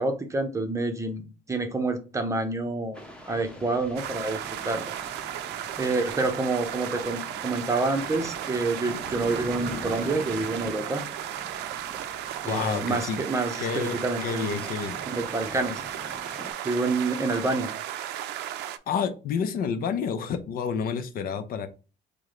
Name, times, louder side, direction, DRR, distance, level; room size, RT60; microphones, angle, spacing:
voice 1, 0.0-3.0 3.3-4.9 5.8-11.0 12.4-14.7 15.1-15.8 16.6-17.7, right 3 dB, 20° right, 6 dB, 0.7 m, -28 dB
sound 1, 2.9-16.5, left 1 dB, 5° left, 0.9 m, -44 dB
sound 2, 4.0-18.8, right 11 dB, 85° right, 0.5 m, -35 dB
voice 2, 12.5-13.2 13.6-15.0 18.9-21.7, left 6 dB, 60° left, 9 dB, 0.6 m, -29 dB
4.7 x 2.2 x 3.7 m, 0.33 s
cardioid pair, 110°, 17 cm